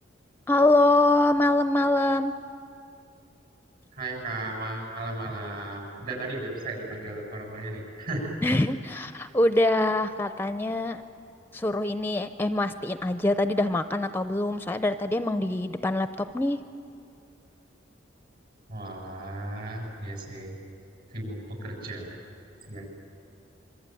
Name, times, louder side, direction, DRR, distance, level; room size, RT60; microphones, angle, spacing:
voice 1, 0.5-2.3 8.4-11.0 11.5-16.6, left 2 dB, 10° left, 10 dB, 0.6 m, -24 dB
voice 2, 3.9-8.5 18.7-20.6 21.1-22.2 22.7-22.9, right 2 dB, 55° right, 1 dB, 7.2 m, -35 dB
26.0 x 24.0 x 9.2 m, 2.6 s
head